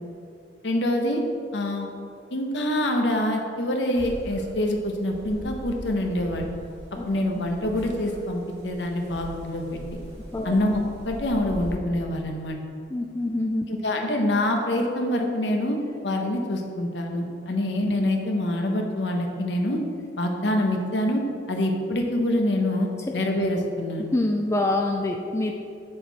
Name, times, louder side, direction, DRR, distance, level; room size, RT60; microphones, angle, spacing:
voice 1, 0.6-1.2 1.5-1.9 2.3-6.5 7.1-9.8 10.4-12.6 13.7-15.8 16.0-19.8 20.2-21.2 21.5-22.9 23.1-24.1, left 1 dB, 85° left, 3 dB, 1.0 m, -25 dB
sound 1, 4.0-11.8, equal, 75° right, 1.9 m, -41 dB
voice 2, 12.9-13.7 24.1-25.5, left 2 dB, 15° left, 2 dB, 0.4 m, -25 dB
7.5 x 6.7 x 4.1 m, 2.5 s
head